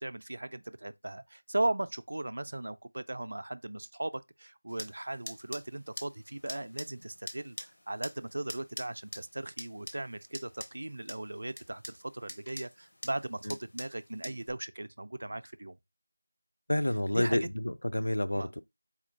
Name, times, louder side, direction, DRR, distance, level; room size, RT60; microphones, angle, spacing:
voice 1, 0.0-15.8 17.1-17.5 18.3-18.6, right 1 dB, 50° right, 0.3 m, -37 dB
sound 1, 4.7-14.5, left 1 dB, 50° left, 0.8 m, -46 dB
voice 2, 16.7-18.6, left 1 dB, 65° left, 0.5 m, -29 dB
4.3 x 2.5 x 4.0 m
figure-of-eight pair, 170°, 0 cm